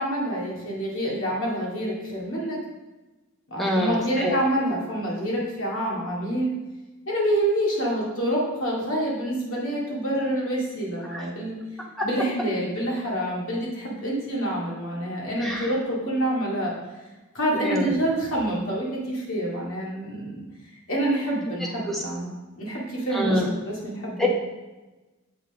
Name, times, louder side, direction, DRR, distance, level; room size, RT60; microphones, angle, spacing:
voice 1, 0.0-2.6 3.5-6.5 7.1-11.6 12.0-16.7 17.3-20.4 20.9-24.3, right 1 dB, 65° left, -5 dB, 2.2 m, -27 dB
voice 2, 3.6-4.4 11.1-11.2 12.0-12.1 15.4-15.7 17.6-17.9 21.9-22.0 23.1-23.5 24.2-24.3, left 1 dB, ahead, -2 dB, 1.0 m, -25 dB
7.5 x 5.4 x 3.6 m, 1.1 s
head